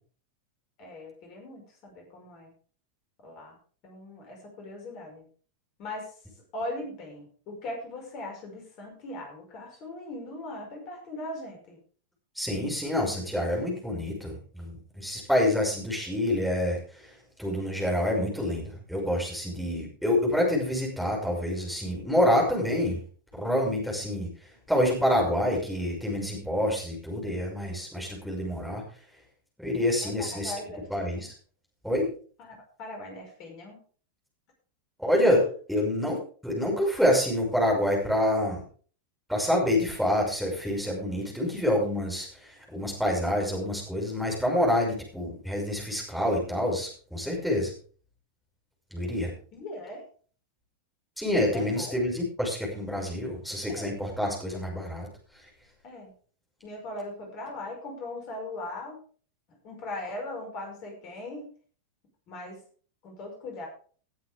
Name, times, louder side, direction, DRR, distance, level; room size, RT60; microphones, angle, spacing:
voice 1, 0.8-2.5 3.2-3.6 3.8-5.2 5.8-6.2 6.5-11.8 30.0-31.3 32.4-33.8 49.5-50.1 51.5-52.0 53.7-53.9 55.8-56.1 56.6-59.0 59.6-61.5 62.3-62.6 63.0-63.7, left 2 dB, 40° left, 2 dB, 5.5 m, -39 dB
voice 2, 12.3-23.0 23.3-28.8 29.6-30.5 30.9-31.3 31.8-32.1 35.0-35.4 35.7-38.6 39.3-47.7 48.9-49.3 51.2-55.1 55.3-55.5, left 1 dB, ahead, -2 dB, 6.1 m, -27 dB
18.5 x 9.4 x 3.6 m, 0.42 s
figure-of-eight pair, 90°, 0 cm